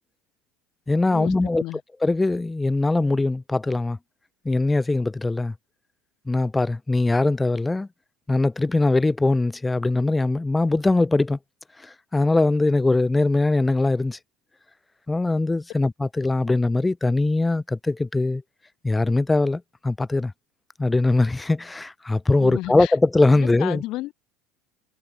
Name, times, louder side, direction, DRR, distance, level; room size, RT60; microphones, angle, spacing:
voice 1, 0.9-1.6 2.0-4.0 4.5-5.5 6.3-7.9 8.3-11.4 11.8-14.2 15.1-18.4 18.8-20.3 20.8-23.8, left 2 dB, 10° left, 0.4 m, -21 dB
voice 2, 22.4-22.9 23.4-24.1, left 18 dB, 55° left, 2.9 m, -32 dB
supercardioid pair, 110°, 0 cm